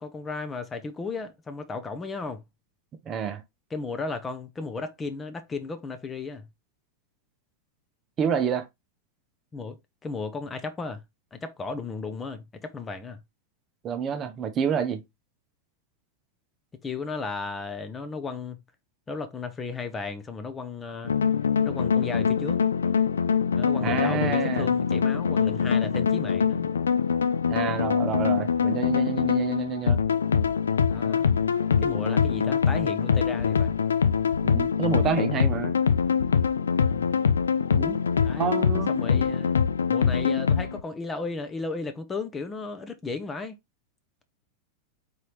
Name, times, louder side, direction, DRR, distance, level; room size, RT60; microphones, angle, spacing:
voice 1, 0.0-2.4 3.7-6.4 9.5-11.0 11.3-13.2 16.8-18.6 19.1-21.1 21.6-22.6 23.5-26.7 30.9-31.3 31.8-33.8 36.8-37.1 38.2-38.6 38.9-39.6 39.9-43.6, left 4 dB, 15° left, 0.7 m, -35 dB
voice 2, 3.1-3.4 8.2-8.7 13.8-15.0 23.8-24.7 27.5-30.0 34.4-35.7 37.7-38.0 38.4-38.9, right 7 dB, 30° right, 0.7 m, -28 dB
sound 1, 21.0-40.8, left 6 dB, 70° left, 0.4 m, -24 dB
4.2 x 3.9 x 3.2 m
figure-of-eight pair, 90°, 0 cm